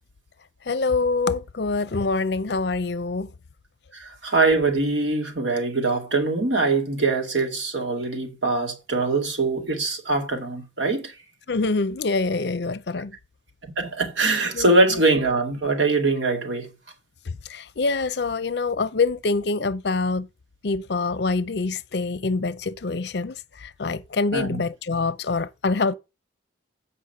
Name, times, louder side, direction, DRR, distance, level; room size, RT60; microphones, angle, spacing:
voice 1, 0.7-3.3 11.5-13.2 14.5-14.7 17.5-20.3 20.6-25.9, left 3 dB, 60° left, 0.6 m, -25 dB
voice 2, 3.9-11.1 13.6-16.7 24.3-24.6, right 3 dB, 75° right, 2.2 m, -23 dB
8.1 x 5.4 x 5.5 m
head